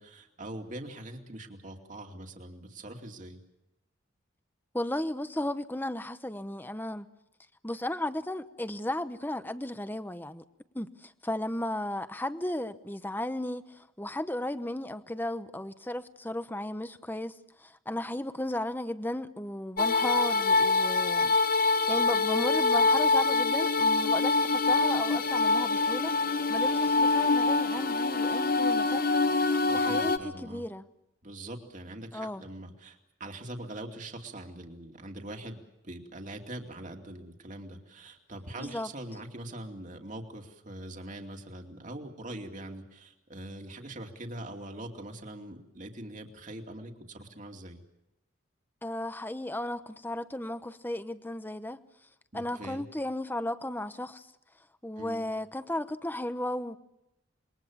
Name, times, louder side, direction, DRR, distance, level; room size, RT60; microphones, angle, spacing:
voice 1, 0.0-3.4 29.7-30.6 31.2-47.8 52.3-52.9 55.0-55.2, right 1 dB, 40° right, 2.6 m, -43 dB
voice 2, 4.7-7.1 7.6-10.4 10.7-30.8 32.1-32.4 38.5-38.9 48.8-51.8 52.3-54.3 54.8-56.8, left 1 dB, 10° left, 0.9 m, -35 dB
sound 1, 19.8-30.2, left 3 dB, 45° left, 1.1 m, -25 dB
27.0 x 22.5 x 7.3 m
head